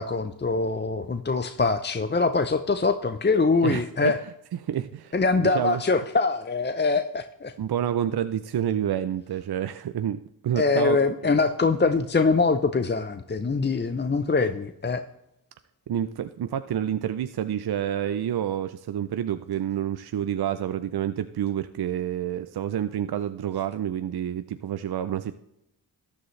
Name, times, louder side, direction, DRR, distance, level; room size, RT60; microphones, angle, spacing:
voice 1, 0.0-4.2 5.1-7.5 10.6-15.0, left 4 dB, 25° left, 10 dB, 0.6 m, -23 dB
voice 2, 3.6-4.1 4.6-5.1 5.4-5.8 7.6-11.0 15.9-25.3, right 10 dB, 75° right, 11 dB, 0.6 m, -28 dB
14.0 x 9.9 x 3.2 m, 0.83 s
cardioid pair, 50°, 39 cm